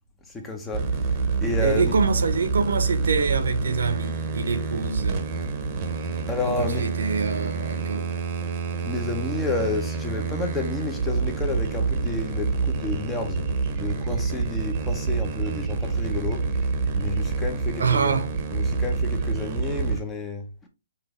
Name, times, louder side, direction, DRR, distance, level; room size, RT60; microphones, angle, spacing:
voice 1, 0.3-1.9 6.3-6.9 8.8-13.4 13.7-16.5 16.9-18.2 18.5-20.5, left 3 dB, 10° left, 0.8 m, -31 dB
sound 1, 0.7-20.0, right 4 dB, 25° right, 0.9 m, -27 dB
voice 2, 1.6-5.2 6.4-8.1 17.8-18.3, right 5 dB, 75° right, 0.9 m, -25 dB
5.8 x 2.7 x 3.2 m
hypercardioid pair, 155°, 0 cm